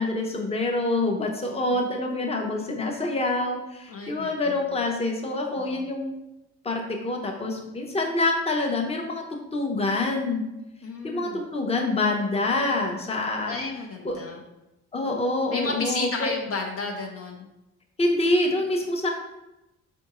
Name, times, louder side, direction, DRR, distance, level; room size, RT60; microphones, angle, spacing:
voice 1, 0.0-6.1 6.6-9.2 9.5-10.4 11.0-13.6 14.0-14.2 14.9-16.3 18.0-19.1, left 2 dB, 20° left, 2 dB, 0.7 m, -26 dB
voice 2, 1.5-1.8 2.5-2.7 3.9-4.6 5.6-5.8 10.8-11.4 13.4-14.4 15.0-15.2 15.5-17.5, left 3 dB, 50° left, 1 dB, 0.6 m, -33 dB
4.5 x 3.5 x 3.0 m, 0.93 s
cardioid pair, 90°, 30 cm